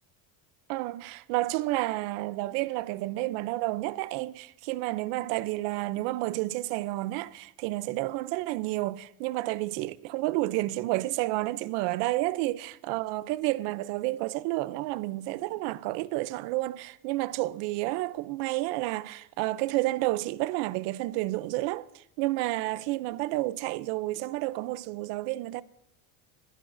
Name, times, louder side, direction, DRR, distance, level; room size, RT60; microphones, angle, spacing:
voice 1, 0.7-25.6, right 18 dB, 70° right, 0.7 m, -30 dB
21.0 x 13.0 x 2.6 m
cardioid pair, 155°, 44 cm